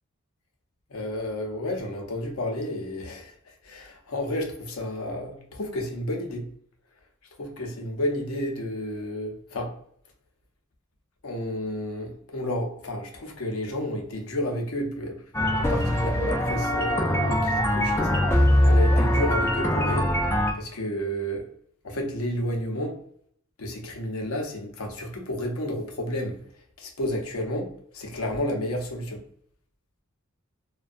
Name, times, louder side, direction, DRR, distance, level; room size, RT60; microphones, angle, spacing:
voice 1, 0.9-3.3 3.6-6.5 7.4-9.7 11.2-15.2 15.6-18.1 18.6-20.1 20.5-21.5 21.8-23.0 23.6-26.4 26.8-29.2, left 1 dB, 80° left, 2 dB, 0.7 m, -31 dB
sound 1, 15.3-20.5, left 1 dB, 10° left, 0.3 m, -22 dB
2.4 x 2.2 x 2.5 m, 0.64 s
head